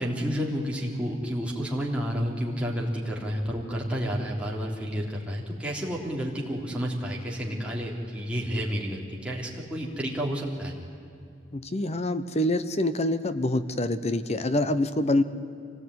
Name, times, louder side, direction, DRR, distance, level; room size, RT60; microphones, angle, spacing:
voice 1, 0.0-10.8, equal, 5° right, -3 dB, 3.4 m, -30 dB
voice 2, 11.5-15.2, left 1 dB, 35° left, 12 dB, 1.0 m, -26 dB
25.0 x 18.0 x 9.7 m, 2.6 s
head